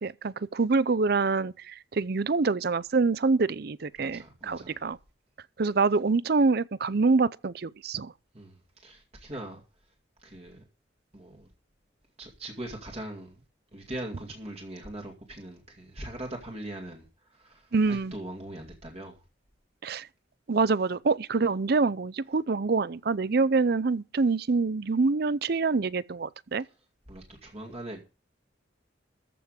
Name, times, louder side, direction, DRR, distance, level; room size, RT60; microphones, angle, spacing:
voice 1, 0.0-5.0 5.6-8.1 17.7-18.1 19.8-20.1 20.5-26.6, right 4 dB, 55° right, 0.5 m, -26 dB
voice 2, 4.0-4.8 8.3-9.6 10.2-10.6 11.1-11.5 12.2-13.4 13.7-19.2 27.1-28.0, right 1 dB, 35° right, 2.3 m, -41 dB
14.0 x 5.9 x 8.0 m
head